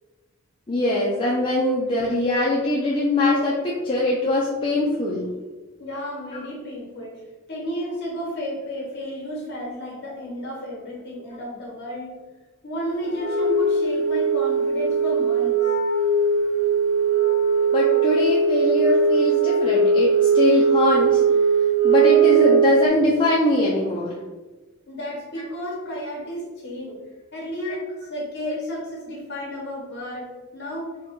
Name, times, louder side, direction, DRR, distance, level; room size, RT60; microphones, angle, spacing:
voice 1, 0.7-5.3 6.3-6.4 17.7-21.2 21.8-24.2, left 2 dB, 25° left, -5 dB, 0.4 m, -22 dB
voice 2, 5.8-7.2 7.5-12.1 12.6-15.6 24.9-27.0 27.3-30.3 30.5-30.9, equal, 50° left, -3 dB, 1.4 m, -32 dB
Wind instrument woodwind instrument, 13.1-22.9, right 5 dB, 65° left, 0.8 m, -19 dB
3.8 x 2.2 x 3.7 m, 1.2 s
head